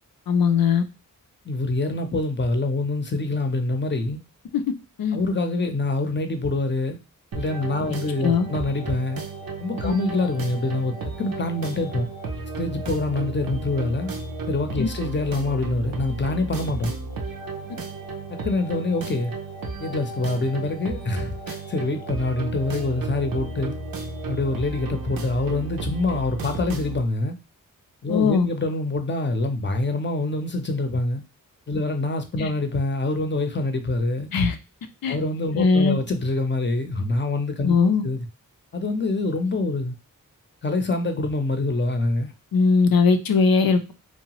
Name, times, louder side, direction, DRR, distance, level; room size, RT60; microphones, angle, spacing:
voice 1, 0.3-0.8 4.5-4.6 5.0-5.2 8.2-8.5 9.8-9.9 14.8-14.9 28.1-28.5 32.4-32.5 34.3-34.6 35.0-35.2 35.6-36.0 37.6-38.0 42.5-43.9, left 5 dB, 85° left, 0.5 m, -19 dB
voice 2, 1.5-4.2 5.1-7.0 7.3-9.2 9.6-12.1 12.6-14.1 14.5-16.9 18.3-19.3 19.8-23.7 24.3-27.4 28.0-31.2 31.7-34.3 35.1-37.8 38.0-38.2 38.7-39.9 40.6-42.3, left 2 dB, 35° left, 0.6 m, -25 dB
sound 1, 7.3-27.0, right 3 dB, 80° right, 0.6 m, -33 dB
2.8 x 2.2 x 2.9 m
cardioid pair, 50°, 34 cm